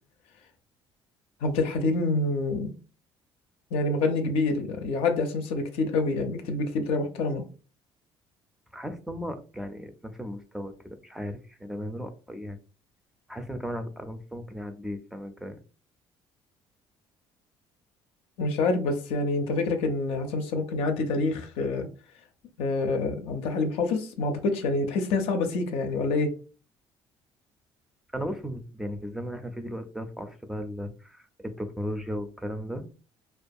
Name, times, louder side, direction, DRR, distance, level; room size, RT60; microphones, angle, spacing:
voice 1, 1.4-2.7 3.7-7.4 18.4-21.9 22.6-26.4, left 3 dB, 80° left, 0.5 m, -27 dB
voice 2, 8.7-12.6 13.3-15.6 28.1-32.8, equal, 5° right, 0.4 m, -36 dB
2.3 x 2.3 x 2.6 m
cardioid pair, 105°, 10 cm